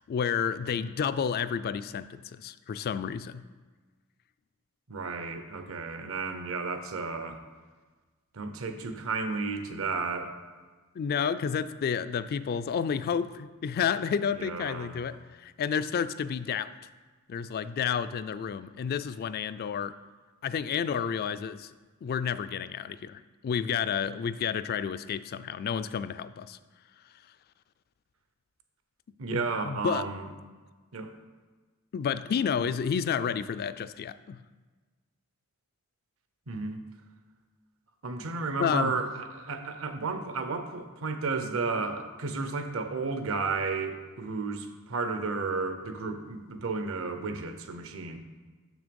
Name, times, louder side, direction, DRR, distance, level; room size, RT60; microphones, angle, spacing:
voice 1, 0.0-3.4 11.0-16.7 17.3-20.0 20.4-21.7 22.0-26.6 29.3-30.1 31.9-34.4 38.6-39.0, left 7 dB, 45° left, 13 dB, 0.3 m, -30 dB
voice 2, 4.9-7.4 8.3-10.3 14.4-15.0 29.2-30.3 30.9-31.1 36.5-36.8 38.0-48.2, right 4 dB, 65° right, 8 dB, 0.8 m, -33 dB
6.7 x 6.2 x 5.3 m, 1.4 s
head